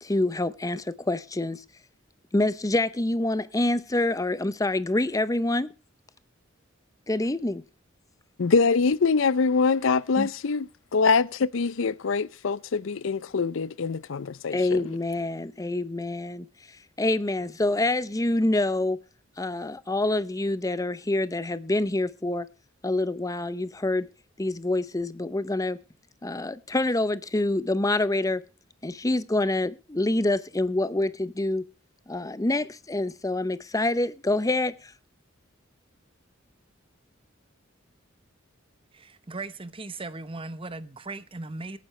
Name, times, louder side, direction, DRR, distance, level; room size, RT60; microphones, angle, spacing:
voice 1, 0.0-1.6 2.3-5.7 7.1-7.6 10.2-10.3 14.5-16.5 17.0-19.0 19.4-22.5 22.8-24.1 24.4-25.8 26.2-28.4 28.8-31.7 32.1-34.9, left 2 dB, 15° left, 0.7 m, -26 dB
voice 2, 8.4-14.8, left 4 dB, 70° left, 0.5 m, -24 dB
voice 3, 38.9-41.8, right 3 dB, 25° right, 0.9 m, -38 dB
22.5 x 9.4 x 3.2 m
head